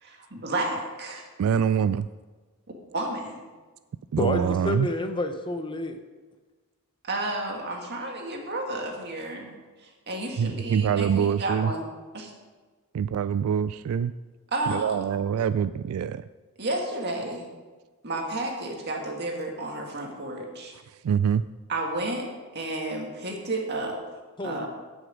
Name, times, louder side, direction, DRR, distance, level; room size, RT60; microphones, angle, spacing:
voice 1, 0.0-1.3 2.9-3.4 7.0-9.5 9.8-11.8 12.1-12.3 14.5-15.0 16.6-17.5 18.0-20.7 21.7-24.0 24.4-24.7, right 2 dB, 50° right, 1 dB, 2.0 m, -31 dB
voice 2, 1.4-2.1 4.1-4.9 10.4-11.7 12.9-14.1 14.7-16.3 21.0-21.4, right 7 dB, 75° right, 14 dB, 0.3 m, -25 dB
voice 3, 4.2-6.0 24.4-24.7, left 1 dB, 20° left, 7 dB, 0.7 m, -29 dB
16.5 x 6.4 x 5.2 m, 1.3 s
head